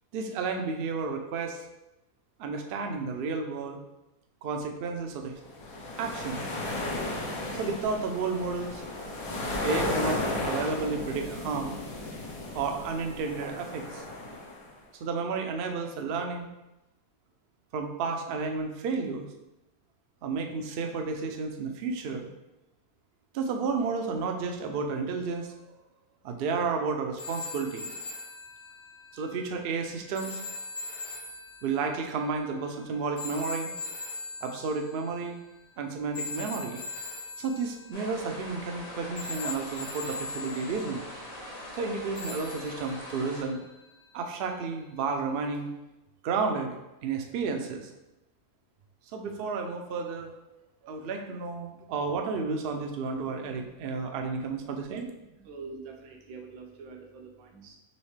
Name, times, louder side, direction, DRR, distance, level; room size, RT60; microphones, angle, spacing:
voice 1, 0.1-1.7 2.4-3.8 4.4-5.3 6.0-6.4 7.6-8.9 9.6-11.8 12.5-14.0 15.0-16.5 17.7-19.3 20.2-22.3 23.3-25.8 26.2-27.9 29.1-30.4 31.6-33.8 34.4-35.4 35.8-36.8 37.4-41.0 41.7-43.6 44.1-45.7 46.2-46.8 47.0-47.9 49.1-50.3 50.8-55.1, right 4 dB, 70° right, 4 dB, 0.5 m, -32 dB
sound 1, 5.5-14.7, left 2 dB, 80° left, 1.3 m, -34 dB
sound 2, 27.2-35.4 36.1-38.9 39.2-41.3 42.2-44.4 45.5-45.7, left 3 dB, 40° left, 0.8 m, -41 dB
sound 3, 37.9-43.4, left 1 dB, 60° left, 1.4 m, -42 dB
voice 2, 55.2-57.8, right 4 dB, 85° right, 3 dB, 1.1 m, -46 dB
4.3 x 3.1 x 3.1 m, 0.96 s
omnidirectional pair, 1.5 m